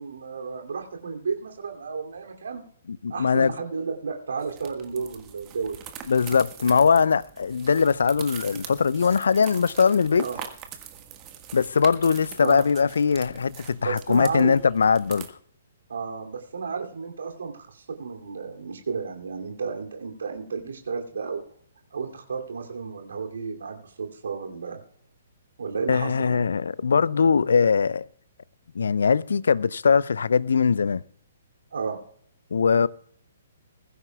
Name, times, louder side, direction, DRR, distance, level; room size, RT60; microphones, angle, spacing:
voice 1, 0.0-2.6 3.1-5.8 10.2-10.4 12.4-12.6 13.8-14.5 15.9-21.4 21.9-24.8 25.6-26.5 31.7-32.0, right 5 dB, 65° right, 2.8 m, -32 dB
voice 2, 3.0-3.5 6.1-10.3 11.5-15.3 25.9-28.0 28.8-31.0 32.5-32.9, left 5 dB, 65° left, 0.5 m, -21 dB
sound 1, 4.4-15.3, right 9 dB, 25° right, 1.6 m, -43 dB
21.5 x 14.5 x 2.4 m
figure-of-eight pair, 125°, 0 cm